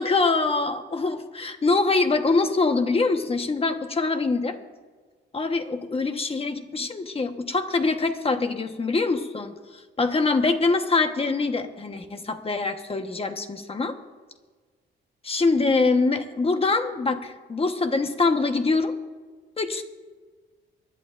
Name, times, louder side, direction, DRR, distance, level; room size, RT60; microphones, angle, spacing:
voice 1, 0.0-4.6 5.3-9.5 10.0-13.9 15.2-18.9 19.6-19.8, left 3 dB, 30° left, 6 dB, 1.2 m, -24 dB
24.5 x 11.0 x 2.6 m, 1.4 s
cardioid pair, 105°, 20 cm